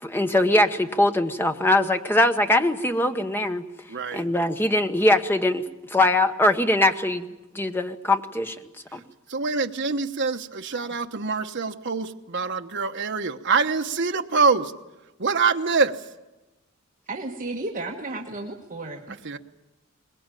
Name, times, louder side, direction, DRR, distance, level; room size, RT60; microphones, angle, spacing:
voice 1, 0.0-3.6 4.1-5.6 5.9-8.6 8.9-9.0, left 1 dB, 10° left, 7 dB, 1.0 m, -22 dB
voice 2, 3.9-4.3 8.9-9.0 9.3-14.7 15.2-16.0 19.2-19.4, right 4 dB, 50° right, 6 dB, 1.1 m, -25 dB
voice 3, 17.1-19.2, right 2 dB, 35° right, 0 dB, 1.5 m, -33 dB
22.5 x 20.5 x 9.1 m, 1.0 s
head